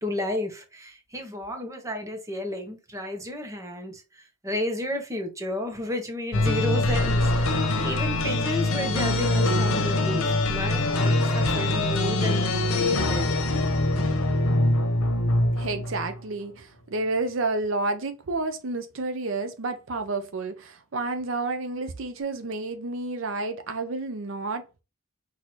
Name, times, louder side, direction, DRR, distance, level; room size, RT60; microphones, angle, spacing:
voice 1, 0.0-13.3, left 1 dB, 15° right, 1.1 m, -32 dB
sound 1, 6.3-16.2, left 2 dB, 90° left, 1.0 m, -23 dB
voice 2, 15.6-24.8, right 3 dB, 65° right, 0.6 m, -30 dB
6.1 x 2.8 x 3.1 m
head